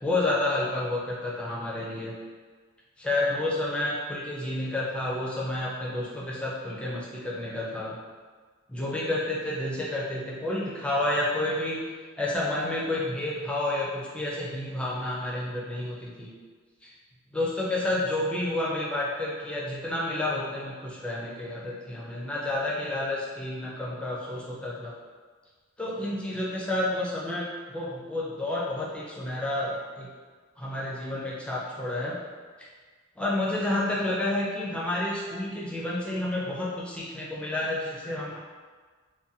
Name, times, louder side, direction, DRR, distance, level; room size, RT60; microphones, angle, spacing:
voice 1, 0.0-2.1 3.0-8.0 8.7-11.8 12.2-16.3 16.8-16.9 17.3-24.9 25.8-30.1 30.6-32.2 33.2-38.4, left 1 dB, 5° left, -6 dB, 0.4 m, -30 dB
2.5 x 2.2 x 2.6 m, 1.5 s
head